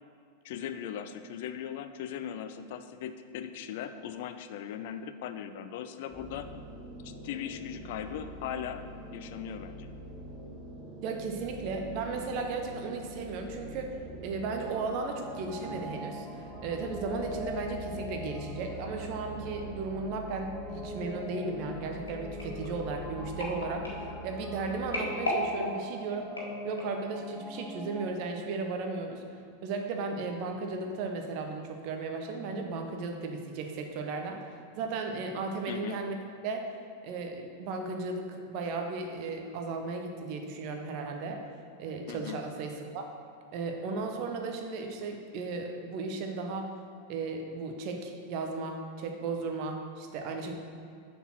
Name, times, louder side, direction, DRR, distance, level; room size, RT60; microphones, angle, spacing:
voice 1, 0.4-6.5 7.0-8.8 9.1-9.9 35.7-36.0 42.1-42.4, left 9 dB, 50° left, 10 dB, 0.4 m, -39 dB
sound 1, 6.1-25.0, right 1 dB, 20° right, 1.4 m, -45 dB
voice 2, 11.0-14.0 14.2-26.3 26.6-34.4 34.8-36.2 36.4-36.7 37.0-41.4 41.8-43.0 43.5-46.7 47.1-50.6, right 4 dB, 45° right, 3 dB, 0.9 m, -35 dB
sound 2, 14.6-28.1, left 2 dB, ahead, 0.8 m, -42 dB
sound 3, 22.1-27.1 27.7-27.9 28.2-28.3, left 1 dB, 75° left, 1.5 m, -37 dB
6.8 x 4.4 x 6.0 m, 2.4 s
figure-of-eight pair, 90°, 0 cm